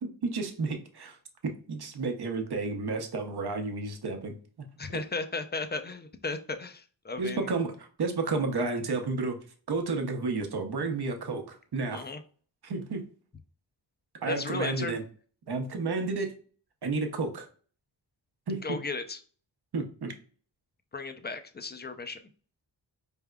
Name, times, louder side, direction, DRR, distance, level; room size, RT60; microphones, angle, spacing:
voice 1, 0.0-1.2 1.4-4.4 7.2-9.4 9.7-12.1 12.6-13.1 14.2-15.0 15.5-16.4 16.8-17.5 18.5-18.8 19.7-20.1, right 3 dB, 55° right, 5 dB, 0.8 m, -31 dB
voice 2, 4.8-7.5 11.9-12.2 14.3-15.0 18.6-19.2 20.9-22.2, left 3 dB, 25° left, 8 dB, 0.5 m, -35 dB
4.7 x 3.5 x 2.2 m, 0.42 s
wide cardioid pair, 85°, 46 cm